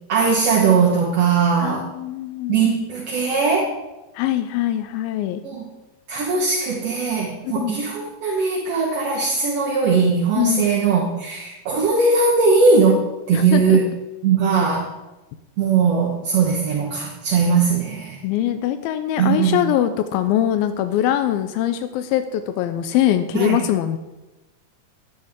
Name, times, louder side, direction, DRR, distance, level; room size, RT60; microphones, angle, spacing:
voice 1, 0.1-1.9 2.5-3.7 5.4-5.6 6.1-13.0 13.3-13.9 14.2-14.9 15.6-18.2 19.2-19.7 23.3-23.6, right 5 dB, 55° right, -4 dB, 1.9 m, -19 dB
voice 2, 1.6-2.9 4.2-5.4 7.4-7.8 10.4-10.7 13.3-13.8 18.2-24.0, left 12 dB, 90° left, 9 dB, 2.4 m, -22 dB
10.5 x 10.5 x 3.6 m, 1.1 s
omnidirectional pair, 4.1 m